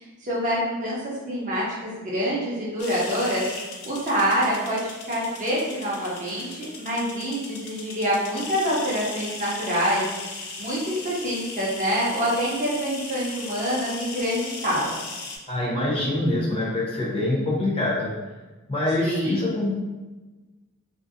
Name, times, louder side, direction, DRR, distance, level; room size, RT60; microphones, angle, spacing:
voice 1, 0.2-1.0 1.3-3.5 3.8-15.0 19.0-19.5, equal, 35° right, -6 dB, 0.6 m, -26 dB
sound 1, 2.8-15.4, left 3 dB, 80° left, 0.4 m, -38 dB
voice 2, 15.5-18.1 18.7-19.8, left 1 dB, 25° left, -6 dB, 0.7 m, -25 dB
2.5 x 2.0 x 2.5 m, 1.2 s
head